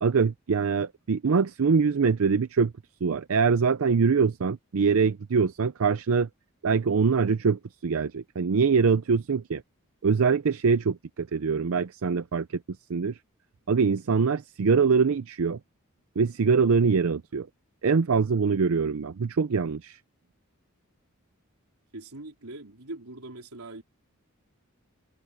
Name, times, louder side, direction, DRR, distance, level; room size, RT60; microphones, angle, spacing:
voice 1, 0.0-2.7 3.0-6.3 6.6-9.6 10.0-12.6 12.9-13.2 13.7-15.6 16.2-17.5 17.8-20.0, right 5 dB, 70° right, 0.5 m, -23 dB
voice 2, 21.9-23.8, right 2 dB, 90° right, 3.8 m, -41 dB
head